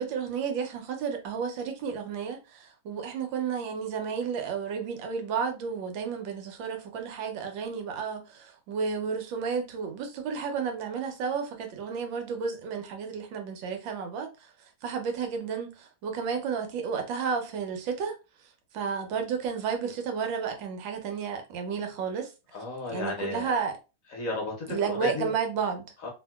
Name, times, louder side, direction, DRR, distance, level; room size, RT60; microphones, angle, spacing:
voice 1, 0.0-14.3 14.8-18.2 18.7-22.3 22.9-23.7 24.7-25.8, right 6 dB, 90° right, 1.5 m, -32 dB
voice 2, 22.5-23.5 24.1-24.5 24.8-25.3 26.0-26.1, left 3 dB, 60° left, 1.0 m, -33 dB
2.9 x 2.7 x 2.3 m
omnidirectional pair, 2.0 m